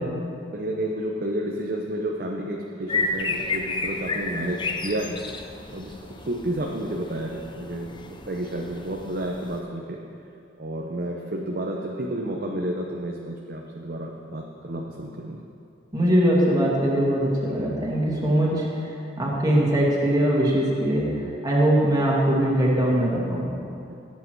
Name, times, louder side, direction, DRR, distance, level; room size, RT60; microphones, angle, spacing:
voice 1, 0.5-5.2 5.7-10.0 10.6-15.4 18.5-18.6 21.2-21.3 23.9-24.0, right 1 dB, 50° right, 0 dB, 0.8 m, -31 dB
sound 1, 2.9-9.6, left 3 dB, 25° left, 0.6 m, -32 dB
voice 2, 15.9-18.5 19.2-23.5, right 1 dB, 20° right, -5 dB, 2.2 m, -21 dB
16.5 x 8.5 x 4.6 m, 2.6 s
head